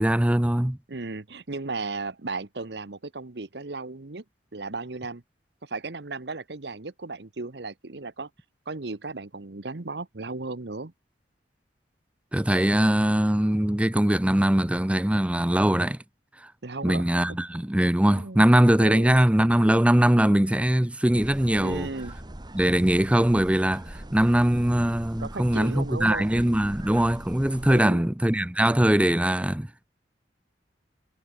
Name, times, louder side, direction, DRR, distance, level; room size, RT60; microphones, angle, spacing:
voice 1, 0.0-0.8 12.3-16.0 16.8-21.9 22.5-29.8, right 1 dB, 5° right, 0.5 m, -21 dB
voice 2, 0.9-4.2 4.5-5.2 5.6-8.3 8.7-10.9 16.6-17.1 18.1-18.5 18.8-19.1 21.6-22.2 25.2-26.4 27.7-28.0, right 3 dB, 65° right, 1.1 m, -35 dB
sound 1, 21.1-27.8, right 1 dB, 25° right, 1.5 m, -41 dB
head